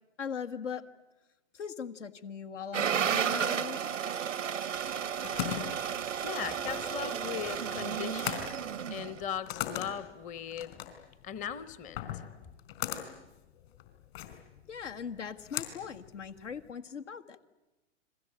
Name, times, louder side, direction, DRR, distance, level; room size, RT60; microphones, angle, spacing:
voice 1, 0.2-0.8 1.5-3.8 14.7-17.4, left 7 dB, 75° left, 8 dB, 1.8 m, -39 dB
sound 1, 2.7-9.2, right 8 dB, 85° right, 0.8 m, -33 dB
sound 2, 4.8-16.7, left 12 dB, 50° left, 4.3 m, -40 dB
voice 2, 6.2-8.5 8.9-10.7 11.2-12.2, left 8 dB, 20° left, 15 dB, 1.0 m, -38 dB
30.0 x 22.0 x 8.9 m, 1.0 s
hypercardioid pair, 115°, 37 cm